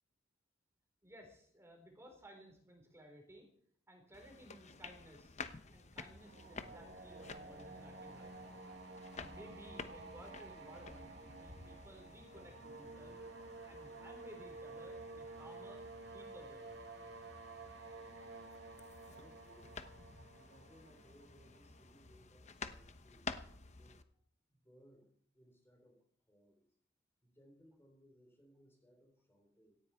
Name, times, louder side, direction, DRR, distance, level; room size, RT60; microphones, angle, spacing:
voice 1, 1.0-3.5 3.9-5.4 5.7-8.6 9.1-13.2 13.7-15.8 16.1-16.7, equal, 15° right, 3 dB, 4.1 m, -57 dB
sound 1, 4.1-24.0, left 4 dB, 35° left, 0.9 m, -52 dB
sound 2, 6.2-22.0, right 3 dB, 60° right, 1.9 m, -52 dB
voice 2, 19.0-19.8 20.3-23.3 23.7-24.0 24.5-26.7 27.2-29.8, equal, 15° left, 2 dB, 3.3 m, -66 dB
17.5 x 15.0 x 4.4 m, 0.62 s
head